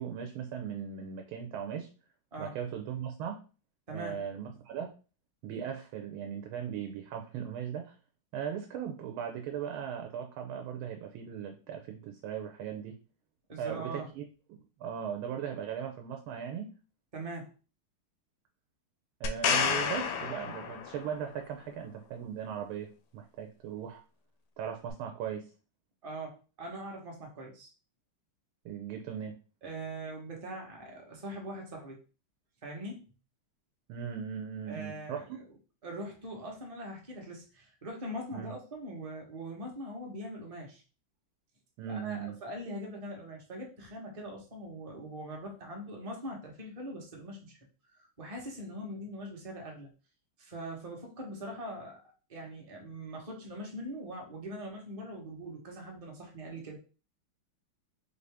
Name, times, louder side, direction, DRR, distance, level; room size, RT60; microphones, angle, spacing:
voice 1, 0.0-1.9 2.4-3.4 3.9-4.9 5.4-7.9 8.3-13.0 13.6-14.2 14.8-16.7 19.2-24.0 24.6-25.5 28.6-29.3 33.9-35.4 38.3-38.5 41.8-42.4, right 8 dB, 80° right, 4 dB, 1.5 m, -38 dB
voice 2, 3.9-4.2 13.5-14.1 17.1-17.5 26.0-27.7 29.6-32.0 32.6-33.0 34.7-35.2 35.8-40.8 41.9-47.6 47.9-49.9 50.4-52.0 52.3-56.8, right 1 dB, 30° right, 0 dB, 0.7 m, -42 dB
sound 1, 19.2-21.2 24.9-25.0, left 6 dB, 75° left, 0.9 m, -30 dB
4.5 x 2.6 x 3.4 m, 0.35 s
omnidirectional pair, 2.3 m